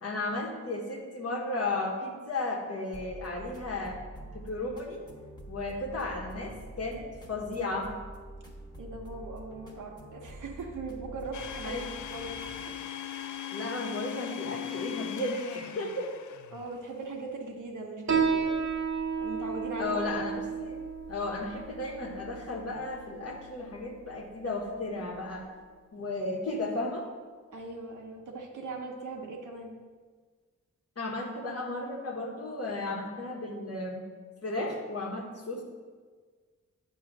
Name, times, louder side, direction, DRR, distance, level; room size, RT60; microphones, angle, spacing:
voice 1, 0.0-4.0 4.3-5.0 5.5-8.0 11.6-11.9 13.5-16.1 19.8-20.8 21.1-25.5 25.9-27.1 31.0-34.0 34.4-35.6, left 2 dB, 55° left, 0 dB, 1.3 m, -34 dB
sound 1, 2.9-12.7, right 1 dB, 15° left, 1.2 m, -46 dB
voice 2, 8.8-11.8 12.1-12.3 12.7-13.2 16.5-18.6 19.2-20.0 27.5-29.8, right 3 dB, 90° right, 1 dB, 1.0 m, -40 dB
Domestic sounds home sounds, 11.3-16.8, left 10 dB, 75° left, 0.5 m, -39 dB
Piano, 18.1-25.1, right 6 dB, 60° right, 0.9 m, -33 dB
8.7 x 3.1 x 6.0 m, 1.5 s
wide cardioid pair, 105°, 30 cm